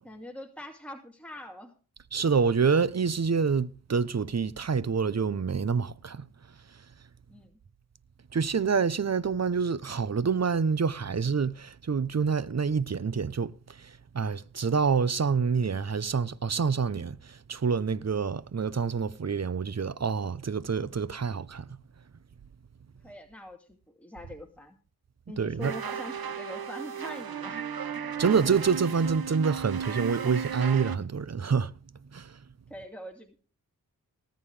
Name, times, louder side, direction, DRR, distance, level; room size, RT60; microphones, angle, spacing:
voice 1, 0.0-1.7 7.3-7.6 23.0-24.8 25.3-27.6 32.7-33.4, equal, 5° left, 2.4 m, -43 dB
voice 2, 2.1-6.3 8.3-13.5 13.8-21.6 25.4-25.7 28.2-31.7 32.1-32.3, right 5 dB, 45° right, 0.9 m, -27 dB
sound 1, 25.6-31.0, right 7 dB, 70° right, 1.2 m, -34 dB
19.0 x 9.3 x 3.4 m
cardioid pair, 50°, 38 cm